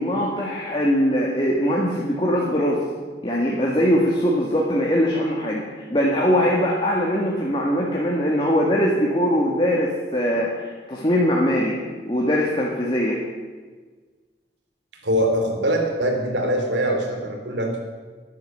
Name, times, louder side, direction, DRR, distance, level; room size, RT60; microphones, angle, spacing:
voice 1, 0.0-2.8 3.2-11.7 12.1-13.2, equal, 25° left, -3 dB, 2.0 m, -21 dB
voice 2, 15.0-17.8, right 1 dB, 80° right, 3 dB, 3.1 m, -23 dB
13.5 x 10.5 x 7.6 m, 1.4 s
head